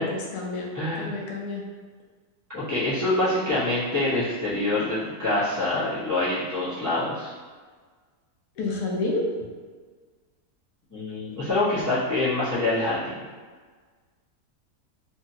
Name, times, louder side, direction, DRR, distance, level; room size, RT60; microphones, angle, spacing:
voice 1, 0.0-1.6 8.6-9.3, left 2 dB, 75° left, -2 dB, 1.0 m, -29 dB
voice 2, 0.7-1.1 2.5-7.3 10.9-13.2, left 2 dB, 25° left, -11 dB, 0.4 m, -25 dB
2.8 x 2.6 x 2.6 m, 1.5 s
omnidirectional pair, 1.7 m